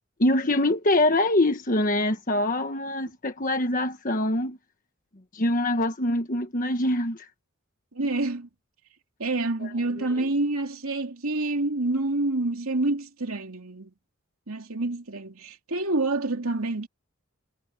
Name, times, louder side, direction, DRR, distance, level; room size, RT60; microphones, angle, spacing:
voice 1, 0.2-4.6 5.3-7.3 9.6-9.7 10.2-10.3, left 1 dB, 40° left, 1.3 m, -24 dB
voice 2, 7.9-8.5 9.2-13.9 14.5-16.9, right 2 dB, 90° right, 2.8 m, -27 dB
head